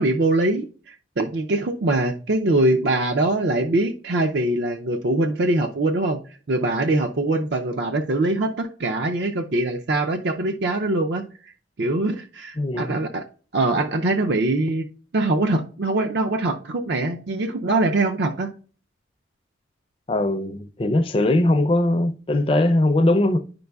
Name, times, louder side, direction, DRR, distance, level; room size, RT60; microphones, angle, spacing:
voice 1, 0.0-6.2 6.5-11.5 11.8-13.2 13.5-14.9 15.1-18.5, right 2 dB, 60° right, 0.5 m, -23 dB
voice 2, 12.6-13.0 20.1-23.4, left 1 dB, 30° left, 0.4 m, -20 dB
10.0 x 5.3 x 2.3 m
head